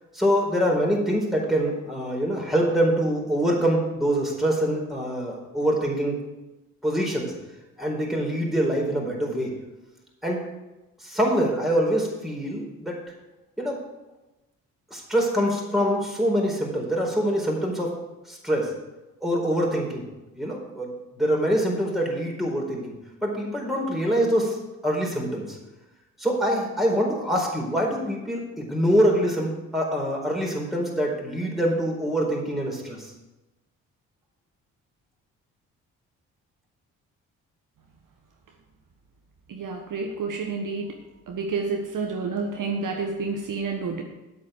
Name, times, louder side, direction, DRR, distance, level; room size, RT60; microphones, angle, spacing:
voice 1, 0.1-6.2 6.8-7.3 7.8-9.5 10.2-10.4 11.0-13.0 13.6-13.8 14.9-17.9 18.3-18.7 19.2-20.1 20.4-22.9 23.2-24.6 24.8-25.6 26.2-33.1, equal, ahead, -2 dB, 4.4 m, -24 dB
voice 2, 39.5-41.0 41.3-44.0, right 4 dB, 50° right, 2 dB, 1.4 m, -29 dB
8.5 x 8.4 x 6.5 m, 1.1 s
hypercardioid pair, 45°, 40 cm